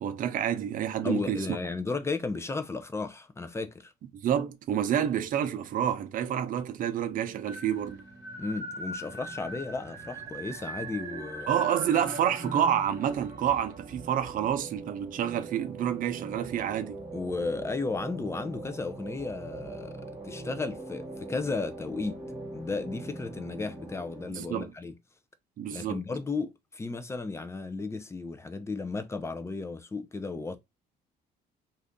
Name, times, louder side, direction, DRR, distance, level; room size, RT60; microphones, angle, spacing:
voice 1, 0.0-1.5 4.2-8.0 11.5-17.0 24.3-24.7 25.6-26.0, right 9 dB, 55° right, 0.6 m, -28 dB
voice 2, 1.0-3.9 8.4-11.5 17.1-22.2 22.5-24.9 25.7-30.6, left 3 dB, 15° left, 0.5 m, -34 dB
sound 1, 7.2-24.3, right 2 dB, 20° right, 1.4 m, -41 dB
2.7 x 2.4 x 3.5 m
cardioid pair, 110°, 17 cm